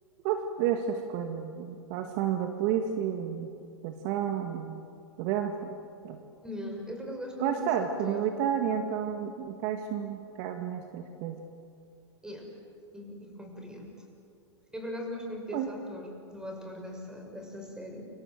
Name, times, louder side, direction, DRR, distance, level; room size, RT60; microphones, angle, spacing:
voice 1, 0.2-3.5 3.8-4.9 5.2-5.8 6.0-6.2 7.4-11.4 15.5-15.7, right 9 dB, 45° right, 5 dB, 2.0 m, -31 dB
voice 2, 6.4-8.2 12.2-12.5 12.9-14.0 14.7-18.1, left 1 dB, 5° right, 2 dB, 6.5 m, -40 dB
29.5 x 25.5 x 7.9 m, 2.5 s
hypercardioid pair, 105°, 15 cm